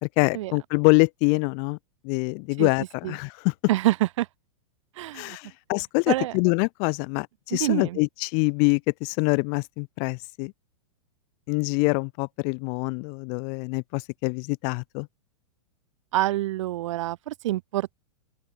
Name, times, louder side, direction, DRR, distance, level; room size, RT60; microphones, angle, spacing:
voice 1, 0.0-1.8 2.0-3.5 5.1-10.5 11.5-15.1, left 40 dB or more, 45° left, 2.0 m, -25 dB
voice 2, 3.7-4.3 5.0-5.4 6.1-6.3 7.5-8.0 16.1-17.9, right 15 dB, 65° right, 1.4 m, -26 dB
open air
hypercardioid pair, 125°, 17 cm